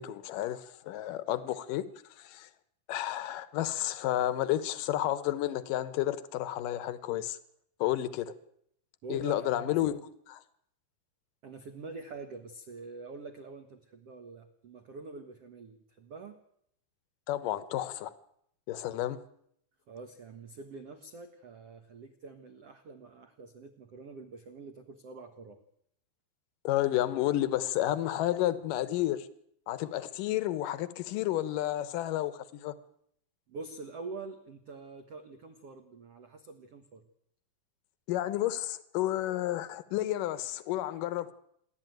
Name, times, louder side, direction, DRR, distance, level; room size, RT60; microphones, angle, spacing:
voice 1, 0.0-1.8 2.2-2.5 2.9-7.4 7.8-8.3 9.1-10.0 17.3-18.1 18.7-19.2 26.6-29.3 29.7-32.7 38.1-41.3, left 13 dB, 70° left, 2.1 m, -31 dB
voice 2, 9.0-9.9 11.4-16.4 19.9-25.6 33.5-37.1, right 3 dB, 85° right, 1.3 m, -45 dB
28.0 x 12.0 x 9.2 m
omnidirectional pair, 5.1 m